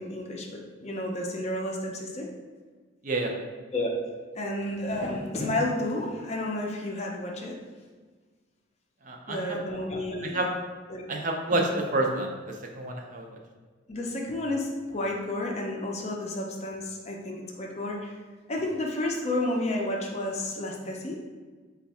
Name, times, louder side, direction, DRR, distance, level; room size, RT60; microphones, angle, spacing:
voice 1, 0.0-2.3 3.7-3.9 4.4-7.6 9.3-10.4 10.9-11.0 11.5-11.7 13.9-18.2 18.5-21.2, left 1 dB, 35° left, 0 dB, 0.5 m, -31 dB
voice 2, 9.0-9.6 10.2-10.5 11.1-13.4, right 2 dB, 40° right, 1 dB, 0.5 m, -29 dB
4.3 x 2.3 x 4.1 m, 1.4 s
head